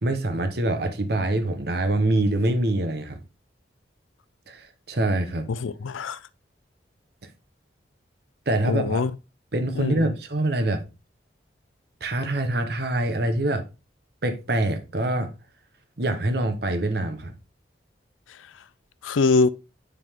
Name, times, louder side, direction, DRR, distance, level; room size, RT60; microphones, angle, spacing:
voice 1, 0.0-3.2 4.5-5.5 8.5-9.0 9.5-10.8 12.0-13.7 14.2-15.3 16.0-17.3, right 1 dB, 55° right, 1.0 m, -25 dB
voice 2, 5.5-6.2 8.6-9.1 9.8-10.1 19.0-19.5, left 4 dB, 90° left, 0.5 m, -23 dB
10.0 x 3.7 x 3.6 m
head